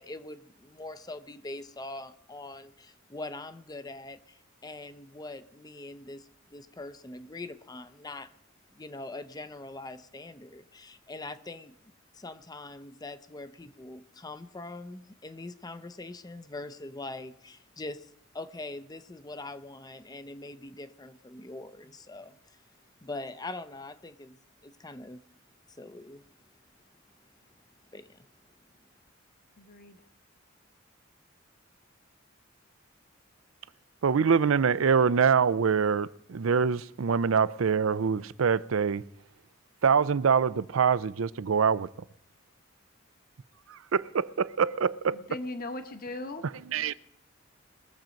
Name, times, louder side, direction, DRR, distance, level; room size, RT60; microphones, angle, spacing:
voice 1, 0.0-8.3 8.7-22.7 23.0-25.3 25.7-26.2 27.9-28.3, left 2 dB, 20° left, 0.6 m, -43 dB
voice 2, 29.6-30.0 45.1-46.4, left 2 dB, 45° left, 1.1 m, -38 dB
voice 3, 34.0-39.0 39.8-41.9 43.7-45.4 46.7-46.9, right 6 dB, 80° right, 0.5 m, -25 dB
21.5 x 7.5 x 5.2 m
head